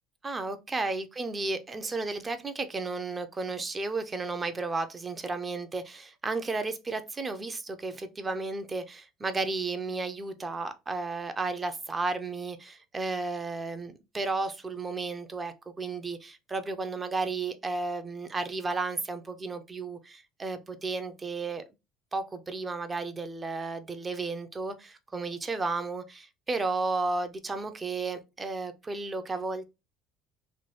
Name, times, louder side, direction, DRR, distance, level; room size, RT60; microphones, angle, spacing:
voice 1, 0.2-21.6 22.1-29.6, right 3 dB, 20° right, 0.3 m, -33 dB
3.0 x 2.2 x 3.0 m
cardioid pair, 140°, 0 cm